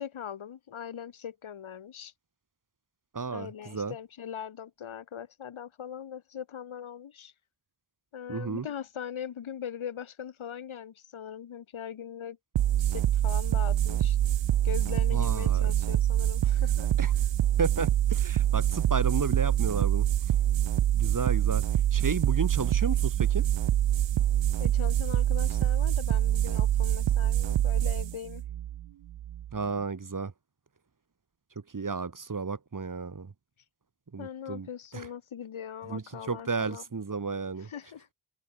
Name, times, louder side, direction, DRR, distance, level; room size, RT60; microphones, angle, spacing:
voice 1, 0.0-2.1 3.3-7.3 8.1-12.4 12.8-14.2 14.6-16.9 24.6-28.4 34.2-36.8 37.6-38.1, left 8 dB, 75° left, 3.2 m, -40 dB
voice 2, 3.1-3.9 8.3-8.7 15.1-15.7 17.0-17.1 17.6-20.1 20.9-21.7 21.9-23.5 29.5-30.3 31.7-33.3 34.1-34.7 34.9-35.1 35.9-37.7, right 4 dB, 40° right, 2.5 m, -32 dB
sound 1, 12.5-29.6, right 12 dB, 65° right, 0.8 m, -25 dB
cardioid pair, 45°, 48 cm